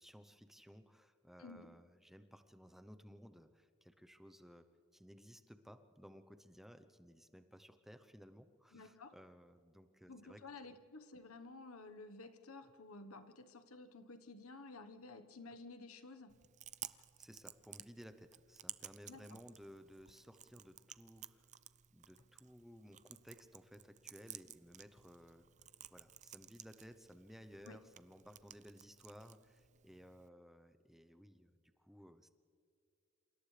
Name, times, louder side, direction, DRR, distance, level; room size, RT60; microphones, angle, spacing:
voice 1, 0.0-4.7 4.9-10.7 16.9-21.5 21.9-25.5 25.9-32.3, equal, ahead, 9 dB, 0.8 m, -58 dB
voice 2, 8.7-9.1 10.1-16.3 19.1-19.4 27.7-27.8, left 3 dB, 80° left, 9 dB, 1.3 m, -53 dB
Chewing mastication, 16.3-30.3, right 12 dB, 35° right, 0.5 m, -55 dB
28.5 x 28.0 x 3.4 m, 2.5 s
head